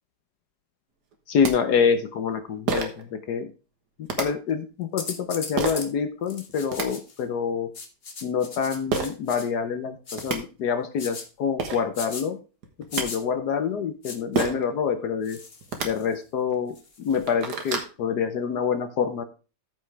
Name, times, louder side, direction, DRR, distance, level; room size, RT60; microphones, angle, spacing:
sound 1, 1.1-1.2 1.4-1.5 2.7-3.0 4.1-4.3 5.6-5.8 6.5-6.9 8.9-9.1 9.9-10.0 10.2-10.4 11.3-11.4 11.6-11.8 12.6-13.1 14.4-14.7 15.6-15.9 16.5-16.6 17.0-17.9, right 4 dB, 65° right, 1.9 m, -27 dB
voice 1, 1.3-3.5 4.2-7.7 8.2-12.4 12.9-15.4 15.8-19.2, left 6 dB, 65° left, 8 dB, 1.4 m, -26 dB
sound 2, 5.0-5.9 6.3-7.2 7.7-9.5 10.1-10.3 11.0-11.3 11.9-12.2 12.9-13.2 14.0-14.5 15.2-16.1 16.8-17.3, left 4 dB, 35° left, 1.3 m, -38 dB
14.0 x 5.6 x 3.4 m, 0.34 s
omnidirectional pair, 1.9 m